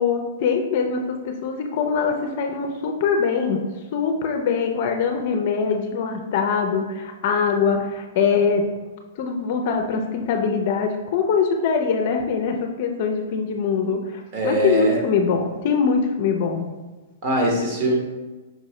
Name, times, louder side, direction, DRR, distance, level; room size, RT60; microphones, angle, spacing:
voice 1, 0.0-3.6 3.9-8.6 9.2-16.7, left 5 dB, 50° left, 4 dB, 0.5 m, -23 dB
voice 2, 14.3-15.0 17.2-18.0, right 1 dB, 45° right, -1 dB, 1.1 m, -22 dB
5.1 x 2.7 x 3.1 m, 1.2 s
hypercardioid pair, 150°, 0 cm